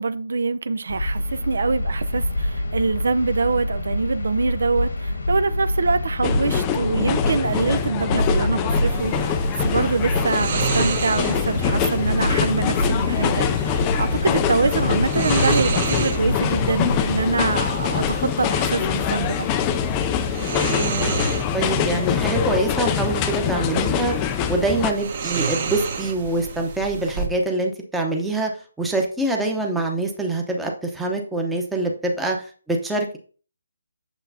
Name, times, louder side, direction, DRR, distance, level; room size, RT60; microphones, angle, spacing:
voice 1, 0.0-19.5, right 4 dB, 65° right, 0.5 m, -24 dB
sound 1, 0.9-17.2, left 1 dB, 85° left, 1.5 m, -26 dB
sound 2, 6.2-24.9, left 8 dB, 15° left, 0.4 m, -24 dB
sound 3, 8.8-27.3, right 5 dB, 40° right, 1.1 m, -31 dB
voice 2, 20.7-21.1 21.5-24.1 24.5-28.5 28.8-33.2, right 2 dB, 5° right, 0.8 m, -25 dB
8.1 x 6.8 x 2.7 m
hypercardioid pair, 165°, 0 cm